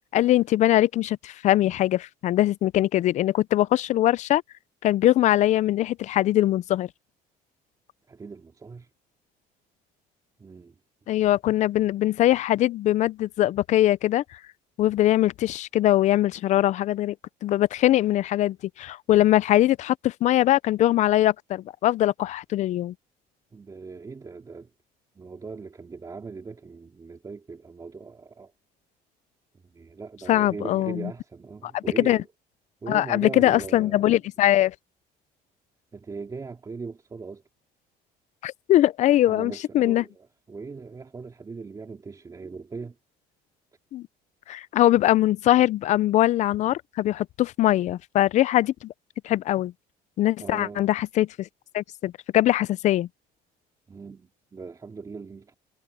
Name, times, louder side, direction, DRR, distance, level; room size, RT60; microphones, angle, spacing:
voice 1, 0.1-4.4 4.8-6.9 11.1-14.2 14.8-17.1 17.4-22.9 30.3-31.1 31.7-32.2 32.9-34.7 38.4-40.0 43.9-44.1 44.5-48.9 49.2-49.7 50.2-51.5 51.7-53.1, left 14 dB, 45° left, 0.4 m, -22 dB
voice 2, 8.1-8.9 10.4-10.8 23.5-24.7 25.1-28.5 29.5-32.2 32.8-34.1 35.9-37.4 39.3-43.0 50.4-50.9 53.9-55.5, right 4 dB, 20° right, 3.1 m, -39 dB
cardioid pair, 145°, 16 cm